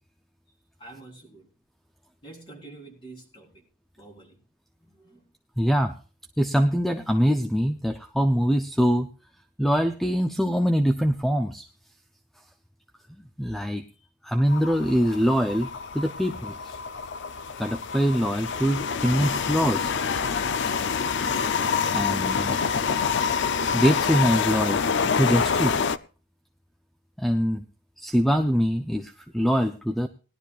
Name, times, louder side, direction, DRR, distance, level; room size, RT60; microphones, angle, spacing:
voice 1, 0.8-1.5 2.2-3.5 4.0-4.4 4.8-5.3, right 2 dB, 25° left, 0 dB, 3.7 m, -46 dB
voice 2, 5.6-5.9 6.4-9.1 9.6-11.7 13.4-13.8 14.2-16.6 17.6-19.9 21.9-22.6 23.7-24.8 25.1-25.8 27.2-27.6 28.0-30.1, equal, ahead, 7 dB, 0.5 m, -23 dB
sound 1, 14.5-26.0, left 6 dB, 55° left, 0.5 m, -27 dB
20.0 x 12.0 x 2.4 m, 0.36 s
head